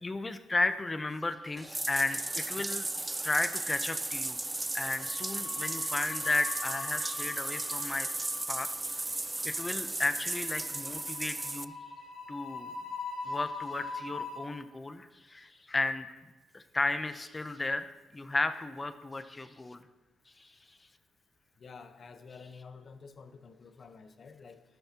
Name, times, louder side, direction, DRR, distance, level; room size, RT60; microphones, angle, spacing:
voice 1, 0.0-2.9 3.2-4.4 4.7-8.1 8.5-8.7 9.4-11.7 12.3-12.7 13.3-16.2 16.5-19.8 20.4-20.5, left 2 dB, 20° left, 10 dB, 0.7 m, -34 dB
Bathtub (filling or washing), 1.6-11.6, right 2 dB, 15° right, 0.3 m, -35 dB
sound 1, 2.3-3.1 3.4-3.6 4.8-14.4, left 4 dB, 85° left, 3.4 m, -43 dB
voice 2, 21.6-24.6, left 5 dB, 45° left, 9 dB, 1.0 m, -50 dB
13.0 x 12.5 x 2.9 m, 1.2 s
cardioid pair, 90°, 0 cm